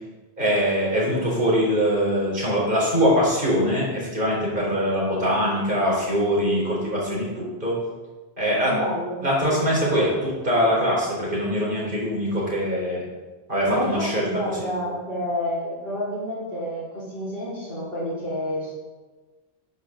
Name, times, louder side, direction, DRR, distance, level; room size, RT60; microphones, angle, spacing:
voice 1, 0.4-7.7 8.4-8.7 9.2-13.0 13.5-14.7, equal, 55° right, -4 dB, 4.1 m, -23 dB
voice 2, 8.6-9.2 13.7-18.7, equal, 65° left, -9 dB, 4.4 m, -29 dB
13.0 x 9.4 x 3.8 m, 1.3 s
omnidirectional pair, 1.0 m